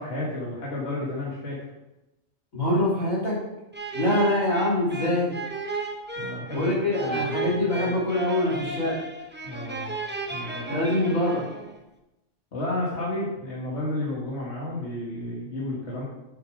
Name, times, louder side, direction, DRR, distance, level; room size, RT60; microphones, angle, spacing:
voice 1, 0.0-1.6 6.2-7.9 9.4-10.0 10.3-10.8 12.5-16.0, left 1 dB, 60° left, -5 dB, 2.1 m, -32 dB
voice 2, 2.5-3.4 3.9-5.4 6.5-8.9 10.7-11.4, left 1 dB, 85° left, -7 dB, 4.2 m, -24 dB
sound 1, 3.7-11.8, right 3 dB, 10° right, 0.6 m, -34 dB
8.0 x 6.9 x 4.9 m, 0.96 s
omnidirectional pair, 1.4 m